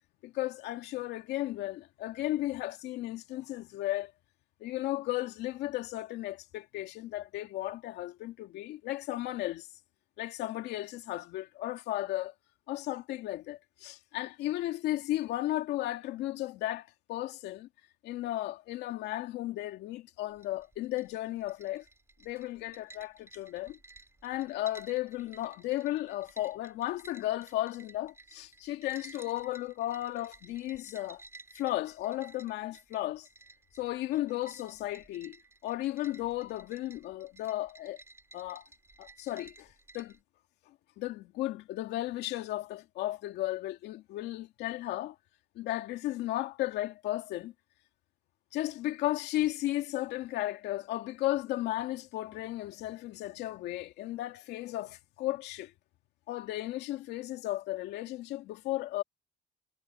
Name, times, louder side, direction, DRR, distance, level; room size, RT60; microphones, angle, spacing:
voice 1, 0.2-4.1 4.6-9.7 10.2-12.3 12.7-17.7 18.0-21.8 22.2-23.8 24.2-31.2 31.5-33.3 33.8-35.4 35.6-38.0 38.3-38.7 39.0-40.2 41.0-45.1 45.6-47.5 48.5-55.7 56.3-59.0, left 15 dB, 85° left, 2.4 m, -35 dB
sound 1, 20.3-40.2, right 2 dB, 15° right, 3.3 m, -55 dB
cardioid pair, 110°, 17 cm